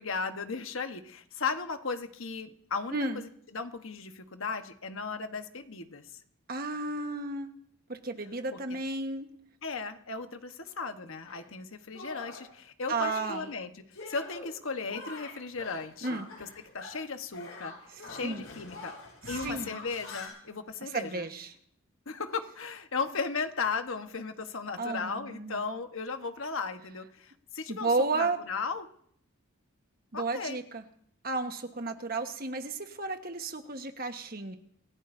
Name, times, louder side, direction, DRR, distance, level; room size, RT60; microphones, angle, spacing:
voice 1, 0.0-3.3 3.5-6.1 8.5-8.6 9.6-13.7 14.1-16.5 16.7-17.7 18.1-18.9 19.3-21.3 22.1-28.9 30.1-30.6, left 4 dB, 65° left, 7 dB, 1.2 m, -36 dB
voice 2, 6.5-7.6 7.9-9.3 12.9-13.5 16.0-16.3 18.2-18.4 19.2-19.8 20.8-21.5 24.8-25.6 27.7-28.4 30.1-30.8 31.2-34.6, right 3 dB, 45° right, 6 dB, 1.3 m, -33 dB
Shatter, 11.2-11.4 11.9-12.5 12.9-13.5 13.9-14.5 14.9-17.1 17.3-20.3, left 2 dB, 80° left, 7.2 m, -44 dB
26.5 x 16.0 x 2.7 m, 0.66 s
head